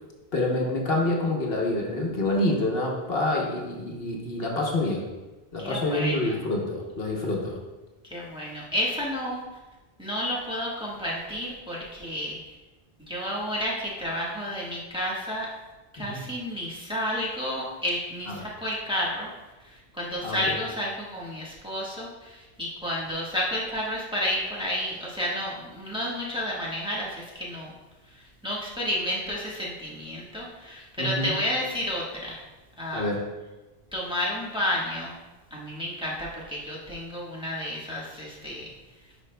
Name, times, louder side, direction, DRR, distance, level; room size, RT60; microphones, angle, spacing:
voice 1, 0.3-5.1 5.5-7.6 16.0-16.2 18.3-18.4 20.2-20.5 31.0-31.3 32.9-33.2, left 2 dB, 70° left, -1 dB, 1.2 m, -27 dB
voice 2, 5.6-6.4 8.0-9.4 10.0-12.4 13.1-15.5 15.9-19.3 19.7-27.7 28.4-32.4 32.8-33.1 33.9-35.1 35.5-38.7, left 1 dB, 5° right, -5 dB, 1.3 m, -31 dB
10.0 x 5.0 x 2.2 m, 1.2 s
omnidirectional pair, 1.0 m